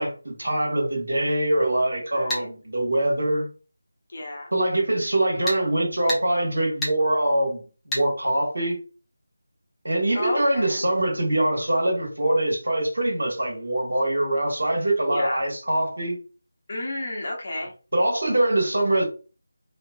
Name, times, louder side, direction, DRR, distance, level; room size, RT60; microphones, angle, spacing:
voice 1, 0.0-3.5 4.5-7.6 7.9-8.8 9.8-16.2 17.9-19.0, right 1 dB, 80° right, 1.4 m, -23 dB
voice 2, 2.1-2.5 4.1-4.5 10.1-10.8 15.1-15.4 16.7-17.7, left 1 dB, 45° left, 1.1 m, -31 dB
sound 1, 2.3-2.5 5.5-5.6 6.1-6.2 6.8-7.0 7.9-8.1, equal, 5° left, 0.9 m, -28 dB
3.1 x 2.9 x 2.3 m
figure-of-eight pair, 165°, 0 cm